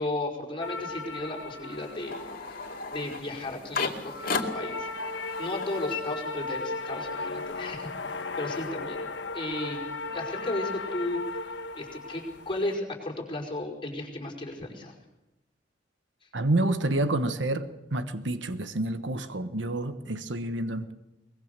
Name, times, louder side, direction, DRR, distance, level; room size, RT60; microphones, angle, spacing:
voice 1, 0.0-2.6 2.9-4.9 5.4-9.8 10.1-11.4 11.7-14.9 16.2-16.3, left 2 dB, 30° left, 0 dB, 5.1 m, -35 dB
sound 1, 0.6-12.7, left 3 dB, 70° left, 1.3 m, -37 dB
sound 2, 1.7-6.8 7.1-8.7, left 4 dB, 55° left, 2.4 m, -36 dB
voice 2, 16.3-20.9, right 2 dB, 85° right, 10 dB, 1.3 m, -28 dB
22.5 x 21.0 x 6.8 m, 0.95 s
head